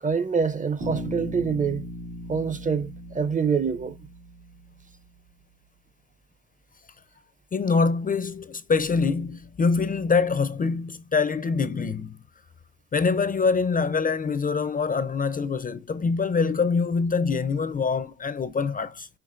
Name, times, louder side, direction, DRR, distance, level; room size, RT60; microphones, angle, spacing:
voice 1, 0.0-1.9 2.3-3.9, right 5 dB, 25° right, 0.6 m, -25 dB
Bass guitar, 0.8-4.8, equal, 85° right, 2.0 m, -38 dB
voice 2, 7.5-12.2 12.9-19.1, left 5 dB, 30° left, 0.5 m, -24 dB
5.9 x 2.9 x 2.5 m
cardioid pair, 90°, 30 cm